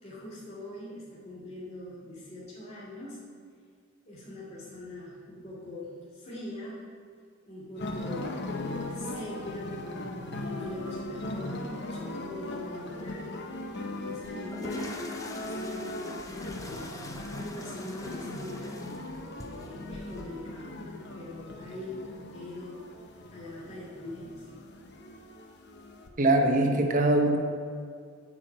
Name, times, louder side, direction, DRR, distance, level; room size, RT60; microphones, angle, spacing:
voice 1, 0.0-3.2 4.0-6.8 7.5-9.7 10.3-13.4 13.9-15.0 15.3-17.0 17.3-18.8 19.5-20.9 21.1-22.8 23.3-24.5, left 1 dB, 35° left, -8 dB, 2.6 m, -42 dB
sound 1, 7.7-26.1, left 2 dB, 55° left, 0.9 m, -39 dB
sound 2, 14.2-20.2, left 1 dB, 15° left, 0.7 m, -45 dB
voice 2, 26.2-27.4, right 1 dB, 40° right, 3 dB, 1.0 m, -22 dB
8.7 x 4.8 x 7.5 m, 2.2 s
head